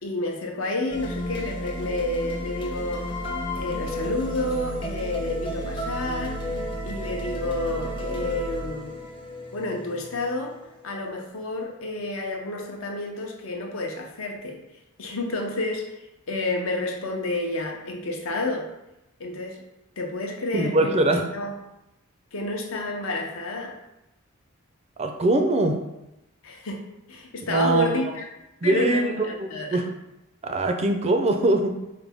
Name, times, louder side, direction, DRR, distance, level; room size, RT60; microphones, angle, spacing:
voice 1, 0.0-3.0 3.6-6.4 6.8-9.0 9.5-10.5 10.8-14.6 15.0-15.8 16.3-18.7 19.2-19.6 20.0-21.0 21.3-21.5 22.3-23.7 26.4-28.3 28.6-29.8, left 2 dB, 65° left, 1 dB, 0.7 m, -30 dB
sound 1, 0.9-11.0, equal, 25° left, 0.6 m, -32 dB
voice 2, 20.5-21.3 25.0-25.8 27.5-28.1 28.6-29.9 30.4-31.7, right 2 dB, 30° right, 5 dB, 0.4 m, -22 dB
4.9 x 2.2 x 3.4 m, 0.92 s
head